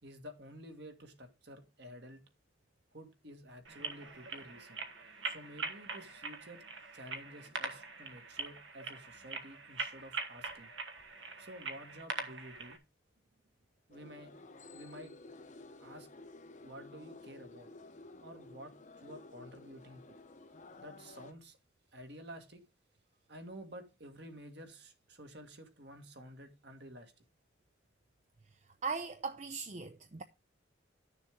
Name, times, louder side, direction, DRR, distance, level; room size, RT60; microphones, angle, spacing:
voice 1, 0.0-2.2 2.9-4.8 5.3-6.7 6.9-10.7 11.4-12.8 13.9-14.4 14.7-15.2 15.8-16.1 16.6-17.7 18.2-20.2 20.8-21.6 21.9-22.7 23.3-27.2, equal, 55° right, 1.8 m, -51 dB
sound 1, 3.6-12.8, right 4 dB, 75° right, 1.4 m, -43 dB
sound 2, 13.9-21.3, left 2 dB, 40° left, 0.8 m, -53 dB
voice 2, 28.8-30.2, right 4 dB, 35° right, 0.5 m, -39 dB
11.5 x 6.7 x 3.6 m
head